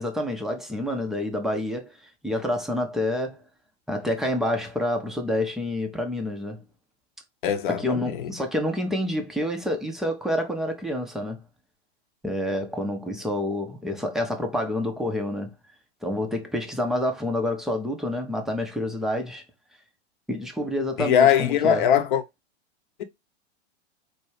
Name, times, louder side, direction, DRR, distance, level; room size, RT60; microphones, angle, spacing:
voice 1, 0.0-1.9 2.2-3.4 3.9-6.6 7.7-11.4 12.2-15.5 16.0-19.4 20.3-21.9, left 1 dB, ahead, 0.4 m, -28 dB
voice 2, 7.4-8.3 21.0-22.2, left 9 dB, 45° left, 0.8 m, -21 dB
4.3 x 2.2 x 3.1 m
figure-of-eight pair, 100°, 34 cm